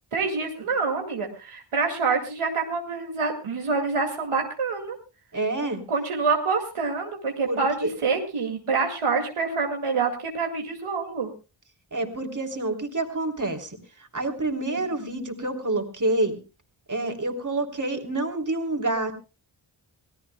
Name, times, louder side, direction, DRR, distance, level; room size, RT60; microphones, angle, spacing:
voice 1, 0.1-5.0 5.9-11.3 14.7-14.8, right 4 dB, 90° right, 2 dB, 2.3 m, -26 dB
voice 2, 5.3-5.8 7.4-7.9 11.9-13.8 14.1-16.4 16.9-19.1, right 2 dB, 40° right, 3 dB, 3.2 m, -27 dB
26.5 x 17.0 x 2.2 m, 0.32 s
cardioid pair, 55°, 49 cm